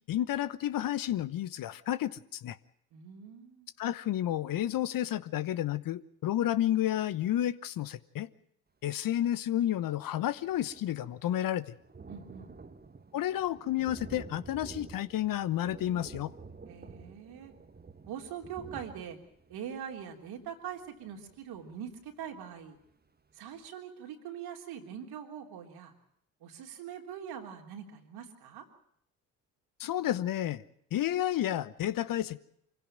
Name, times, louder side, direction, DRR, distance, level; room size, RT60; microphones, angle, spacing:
voice 1, 0.0-2.6 3.8-8.3 8.8-11.7 13.1-16.3 29.8-30.6 30.9-32.4, left 12 dB, 50° left, 16 dB, 1.1 m, -31 dB
voice 2, 2.9-3.7 12.1-12.5 16.7-17.5 18.1-19.2 19.5-22.8 23.3-25.9 26.4-28.7, right 8 dB, 65° right, 4 dB, 3.6 m, -43 dB
Thunder, 9.5-9.6 9.8-22.4 22.9-23.0 23.3-23.4, right 4 dB, 25° right, 1.8 m, -50 dB
25.0 x 16.0 x 8.9 m, 0.72 s
hypercardioid pair, 50°, 41 cm